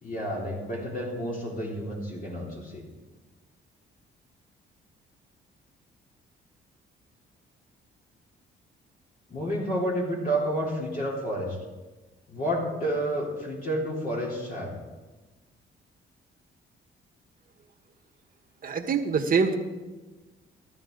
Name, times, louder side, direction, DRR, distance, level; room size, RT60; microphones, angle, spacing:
voice 1, 0.0-2.8 9.3-11.6 12.3-14.7, right 1 dB, 45° left, -3 dB, 3.3 m, -30 dB
voice 2, 18.6-19.6, right 5 dB, 45° right, 4 dB, 1.5 m, -24 dB
14.5 x 12.5 x 3.9 m, 1.2 s
cardioid pair, 90°, 20 cm